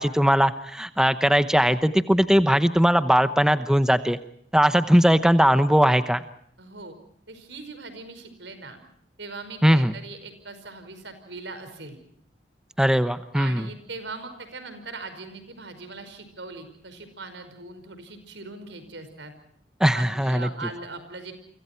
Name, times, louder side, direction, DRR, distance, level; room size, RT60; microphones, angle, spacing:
voice 1, 0.0-4.2 4.5-6.2 9.6-9.9 12.8-13.7 19.8-20.5, equal, 5° right, 11 dB, 0.9 m, -19 dB
voice 2, 6.6-7.0 7.3-8.8 9.2-12.0 13.3-19.3 19.9-21.3, right 3 dB, 85° right, 10 dB, 5.3 m, -40 dB
30.0 x 25.0 x 4.5 m, 0.66 s
head